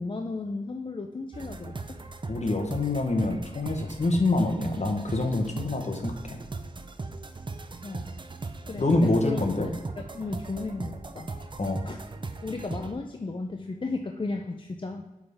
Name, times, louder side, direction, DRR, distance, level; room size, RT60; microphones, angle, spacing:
voice 1, 0.0-1.8 7.8-8.1 8.7-11.3 11.8-12.0 12.4-15.0, left 3 dB, 35° left, 3 dB, 0.4 m, -34 dB
sound 1, 1.3-12.9, right 3 dB, 30° right, 0.4 m, -39 dB
voice 2, 2.3-6.4 8.8-9.7 11.6-11.8, left 2 dB, 50° left, 4 dB, 1.0 m, -26 dB
8.0 x 3.6 x 3.4 m, 1.1 s
wide cardioid pair, 85°, 15 cm